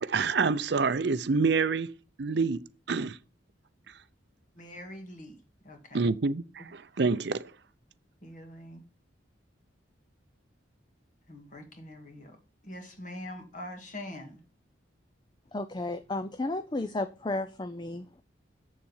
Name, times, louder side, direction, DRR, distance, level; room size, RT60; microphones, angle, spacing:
voice 1, 0.0-1.9 2.2-3.2 5.9-7.5, right 4 dB, 60° right, 0.5 m, -27 dB
voice 2, 4.6-5.4 5.6-6.1 8.2-8.8 11.3-12.4 12.6-14.4, left 1 dB, 40° left, 2.0 m, -43 dB
voice 3, 15.5-18.2, left 2 dB, 25° left, 0.5 m, -33 dB
7.6 x 7.2 x 5.5 m
head